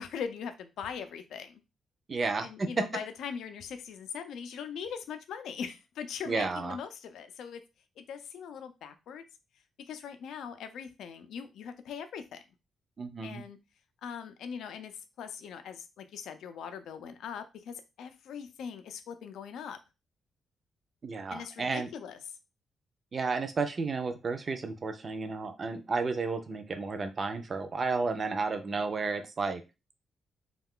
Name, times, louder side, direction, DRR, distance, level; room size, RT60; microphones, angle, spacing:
voice 1, 0.0-1.6 2.4-7.6 8.0-9.2 9.9-12.4 13.2-13.6 14.0-19.8 21.3-22.2 28.7-28.8, left 7 dB, 80° left, 9 dB, 0.4 m, -41 dB
voice 2, 2.1-2.8 6.3-6.8 13.0-13.4 21.0-21.9 23.1-29.6, right 4 dB, 35° right, 8 dB, 0.4 m, -32 dB
2.3 x 2.3 x 3.6 m, 0.27 s
cardioid pair, 125°, 0 cm